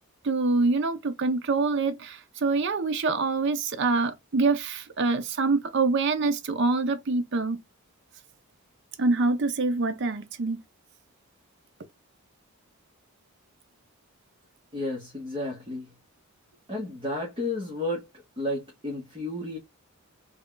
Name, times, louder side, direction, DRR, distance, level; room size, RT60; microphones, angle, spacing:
voice 1, 0.2-7.6 9.0-10.6, right 3 dB, 50° right, 0.5 m, -25 dB
voice 2, 14.7-15.9 16.7-19.6, left 2 dB, 25° right, 0.9 m, -32 dB
3.6 x 2.2 x 3.7 m
head